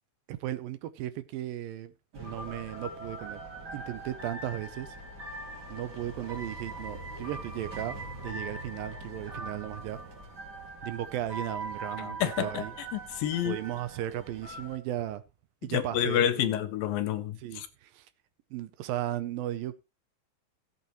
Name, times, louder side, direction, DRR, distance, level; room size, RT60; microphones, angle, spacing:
voice 1, 0.3-3.4 3.7-5.0 5.7-8.0 8.2-10.0 10.8-12.7 13.4-15.2 15.6-16.5 17.4-18.1 18.5-19.7, right 13 dB, 80° right, 2.3 m, -36 dB
sound 1, 2.1-14.8, right 2 dB, 30° right, 3.0 m, -41 dB
voice 2, 12.0-13.6 15.7-17.7, left 11 dB, 75° left, 2.3 m, -29 dB
16.5 x 8.3 x 3.0 m
omnidirectional pair, 4.4 m